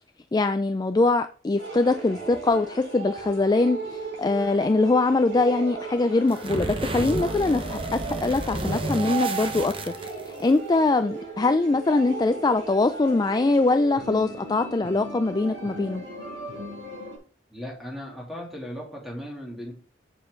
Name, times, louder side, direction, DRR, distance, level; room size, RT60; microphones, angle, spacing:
voice 1, 0.3-9.9 10.4-16.0, left 3 dB, 20° left, 0.3 m, -23 dB
sound 1, 1.6-17.2, right 3 dB, 70° right, 4.2 m, -36 dB
sound 2, 6.3-10.5, right 2 dB, 30° right, 0.9 m, -32 dB
voice 2, 17.5-19.7, equal, ahead, 2.8 m, -37 dB
7.5 x 7.0 x 3.8 m
head